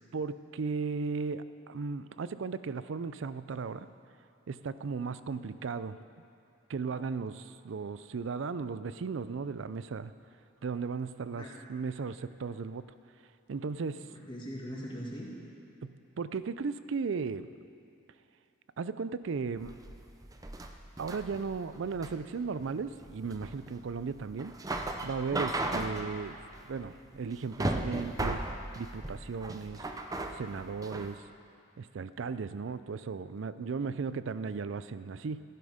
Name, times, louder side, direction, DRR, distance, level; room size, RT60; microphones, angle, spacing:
voice 1, 0.1-3.9 4.5-6.0 6.7-10.1 10.6-11.4 11.7-12.9 13.5-14.0 15.8-17.5 18.8-19.8 21.0-24.5 25.0-26.4 26.7-28.4 28.7-29.8 30.3-31.2 31.8-35.4, right 5 dB, 70° right, 14 dB, 0.4 m, -36 dB
voice 2, 14.1-15.3, equal, 25° left, -4 dB, 2.2 m, -42 dB
sound 1, 19.6-31.1, right 2 dB, 15° right, 0.6 m, -37 dB
15.0 x 11.0 x 5.1 m, 2.5 s
head